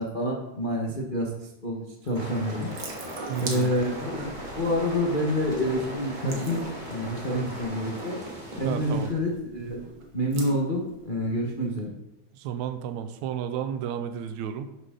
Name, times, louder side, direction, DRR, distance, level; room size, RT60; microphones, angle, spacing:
voice 1, 0.0-2.7 3.4-8.2 8.5-9.8 10.1-11.9, equal, 70° left, -3 dB, 0.4 m, -28 dB
Water tap faucet / Sink (filling or washing) / Drip, 2.0-11.8, right 3 dB, 50° right, 1.8 m, -43 dB
sound 1, 2.1-9.1, equal, 15° right, 1.8 m, -39 dB
voice 2, 3.3-3.7 7.4-7.6 8.7-9.1 12.3-14.7, right 9 dB, 75° right, 8 dB, 2.0 m, -32 dB
11.5 x 8.2 x 3.8 m, 0.90 s
omnidirectional pair, 3.5 m